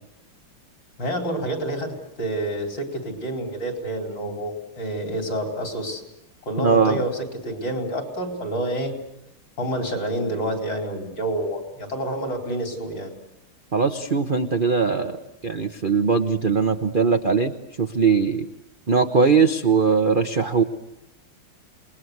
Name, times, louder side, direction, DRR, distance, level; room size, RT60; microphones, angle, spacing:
voice 1, 1.0-6.0 6.4-8.9 9.6-13.1, right 1 dB, 60° left, 3 dB, 5.2 m, -28 dB
voice 2, 6.6-7.0 13.7-18.5 18.9-20.6, right 5 dB, 40° right, 6 dB, 0.8 m, -20 dB
28.0 x 21.0 x 8.0 m, 0.84 s
omnidirectional pair, 2.4 m